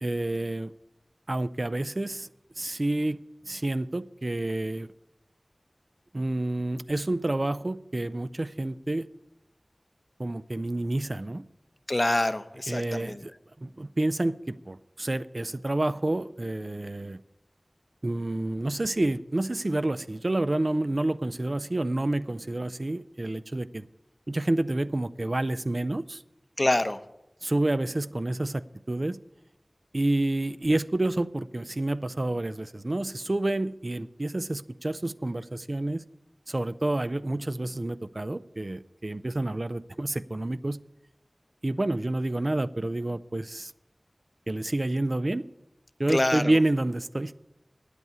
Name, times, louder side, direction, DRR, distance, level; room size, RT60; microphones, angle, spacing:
voice 1, 0.0-0.7 1.3-2.3 2.6-3.2 3.4-4.9 6.1-9.1 10.2-11.4 12.7-13.3 13.6-17.2 18.0-23.9 24.3-26.2 27.4-29.2 29.9-36.0 36.5-40.8 41.6-43.7 44.5-45.4 46.0-47.4, right 2 dB, 55° right, 0.4 m, -29 dB
voice 2, 11.9-13.2 26.6-27.0 46.1-46.5, left 1 dB, 45° left, 0.7 m, -26 dB
9.3 x 8.2 x 8.6 m
wide cardioid pair, 45°, 0 cm